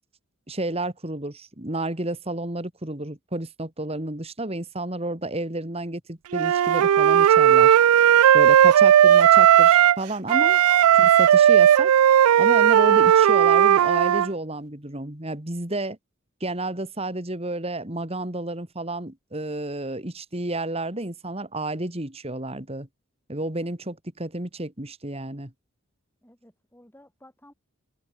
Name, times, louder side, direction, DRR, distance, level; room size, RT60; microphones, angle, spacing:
voice 1, 0.5-7.8 8.3-10.6 10.9-11.9 12.4-16.0 16.4-22.9 23.3-25.5, right 2 dB, 30° right, 2.4 m, -31 dB
Wind instrument woodwind instrument, 6.3-10.0 10.3-14.3, right 10 dB, 90° right, 0.3 m, -16 dB
voice 2, 26.2-27.5, left 1 dB, 10° left, 5.2 m, -54 dB
head